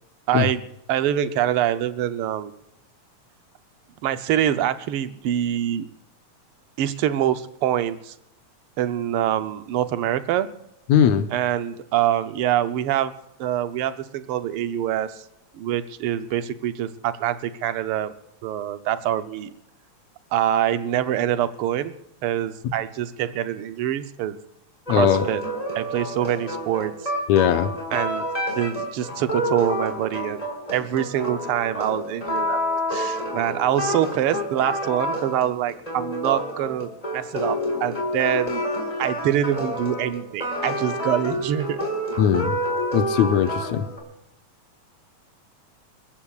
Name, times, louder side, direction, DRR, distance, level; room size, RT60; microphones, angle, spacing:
voice 1, 0.3-0.6 0.9-2.5 4.0-5.9 6.8-8.1 8.8-10.5 11.3-13.1 13.4-15.2 15.5-18.1 18.4-19.5 20.3-21.9 22.2-24.4 24.9-25.4 25.7-26.9 27.9-28.3 28.5-30.4 30.7-32.6 32.9-38.6 39.0-41.8, right 11 dB, 75° right, 11 dB, 1.3 m, -25 dB
voice 2, 10.9-11.3 24.9-25.3 27.3-27.7 42.2-42.6 42.9-43.9, left 9 dB, 75° left, 9 dB, 2.2 m, -19 dB
sound 1, 24.9-44.0, equal, 10° left, 4.4 m, -28 dB
29.5 x 14.5 x 2.4 m, 0.81 s
omnidirectional pair, 3.3 m